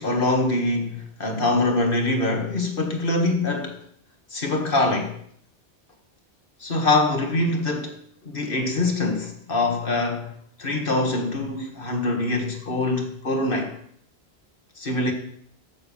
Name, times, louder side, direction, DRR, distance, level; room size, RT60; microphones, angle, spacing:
voice 1, 0.0-3.9 4.3-5.2 6.6-10.3 10.6-13.8 14.8-15.1, left 2 dB, 55° left, 2.0 m, -24 dB
13.5 x 7.0 x 5.6 m
omnidirectional pair, 1.1 m